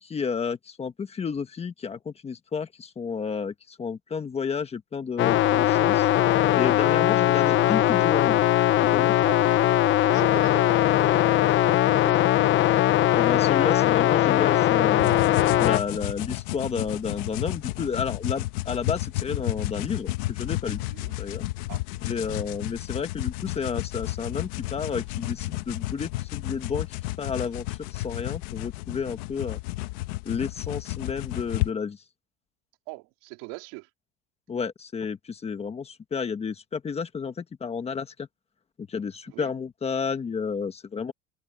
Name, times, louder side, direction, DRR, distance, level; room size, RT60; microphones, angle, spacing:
voice 1, 0.0-6.1 6.5-8.4 8.9-9.1 13.1-15.1 15.6-20.8 21.2-21.4 22.0-26.9 27.2-27.6 27.9-29.6 30.2-32.0 34.5-38.3 38.8-41.1, left 6 dB, 20° left, 1.5 m, -31 dB
sound 1, 5.2-15.8, left 14 dB, 40° left, 0.7 m, -20 dB
voice 2, 6.8-7.1 9.2-9.7 10.0-12.6 20.8-21.1 21.7-21.8 32.9-33.9 39.3-39.5, right 25 dB, 75° right, 3.7 m, -41 dB
sound 2, 15.0-31.7, left 18 dB, 90° left, 1.4 m, -32 dB
open air
cardioid pair, 155°, 30 cm